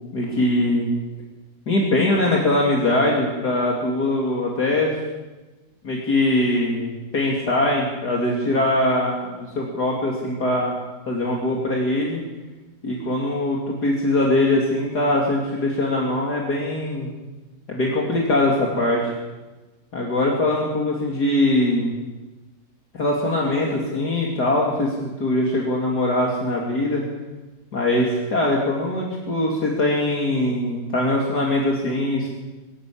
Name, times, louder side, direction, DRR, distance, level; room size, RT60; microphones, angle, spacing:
voice 1, 0.1-0.9 1.7-4.9 5.8-10.7 11.1-12.2 12.8-17.1 17.7-19.1 19.9-21.9 22.9-27.0 27.7-32.3, left 1 dB, 55° left, -2 dB, 3.3 m, -22 dB
24.0 x 13.0 x 8.7 m, 1.2 s
omnidirectional pair, 2.0 m